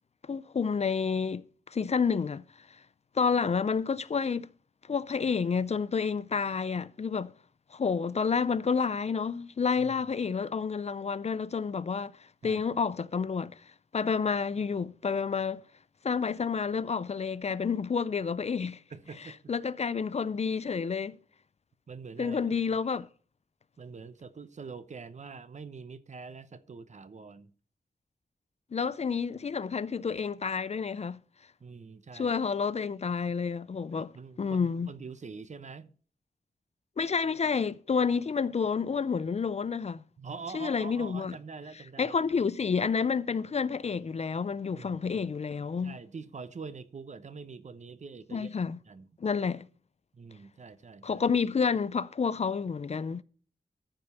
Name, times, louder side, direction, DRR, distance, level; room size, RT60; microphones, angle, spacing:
voice 1, 0.3-2.4 3.1-4.5 4.9-7.3 7.7-12.1 12.4-13.6 13.9-15.6 16.0-18.8 19.2-21.2 22.2-23.1 28.7-31.2 32.1-34.1 34.4-34.9 37.0-40.0 40.5-41.4 42.0-46.0 48.3-48.8 49.2-49.7 51.0-53.2, left 5 dB, 45° left, 0.5 m, -29 dB
voice 2, 18.9-19.4 21.9-22.7 23.8-27.5 31.6-32.3 34.0-35.9 40.2-42.2 44.7-45.3 45.8-48.5 48.9-49.1 50.1-51.2, right 5 dB, 50° right, 0.8 m, -45 dB
14.0 x 5.2 x 5.6 m
wide cardioid pair, 130°, 15 cm